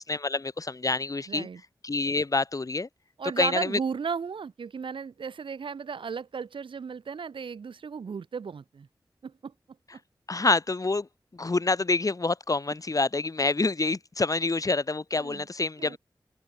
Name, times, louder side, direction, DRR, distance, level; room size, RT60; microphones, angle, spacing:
voice 1, 0.0-1.5 1.8-2.9 3.4-3.8 10.3-11.1 11.3-16.0, left 3 dB, 45° left, 1.4 m, -27 dB
voice 2, 1.3-1.6 3.2-8.9 9.2-9.5 9.9-10.0 15.2-15.5 15.8-16.0, right 6 dB, 85° right, 2.2 m, -35 dB
open air
cardioid pair, 40°, 8 cm